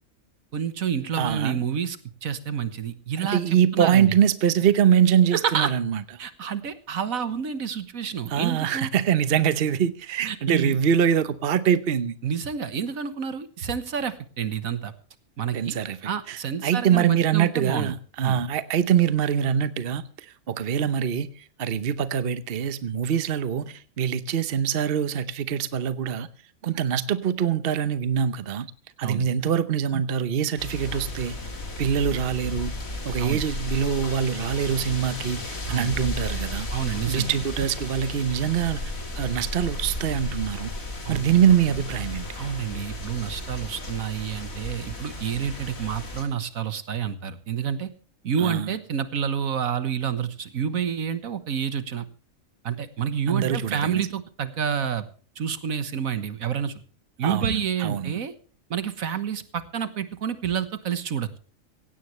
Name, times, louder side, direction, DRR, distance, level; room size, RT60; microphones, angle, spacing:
voice 1, 0.5-4.1 5.3-5.7 6.2-8.9 10.2-10.8 12.2-14.9 15.4-15.8 16.0-17.9 18.2-18.4 29.0-29.3 33.2-33.4 35.7-35.9 36.7-37.3 41.0-41.2 42.4-47.9 48.2-52.0 52.6-55.0 55.3-56.8 57.2-58.3 58.7-61.4, right 8 dB, 80° right, 1.7 m, -29 dB
voice 2, 1.1-1.6 3.2-6.0 8.3-12.2 15.5-26.3 26.6-28.7 29.0-31.3 31.8-32.7 33.0-36.7 37.1-40.7 41.1-42.3 48.4-48.8 53.3-54.1 57.2-58.1, right 8 dB, 50° right, 1.0 m, -24 dB
sound 1, 30.6-46.2, left 1 dB, 80° left, 3.4 m, -34 dB
17.0 x 16.0 x 3.2 m
omnidirectional pair, 1.4 m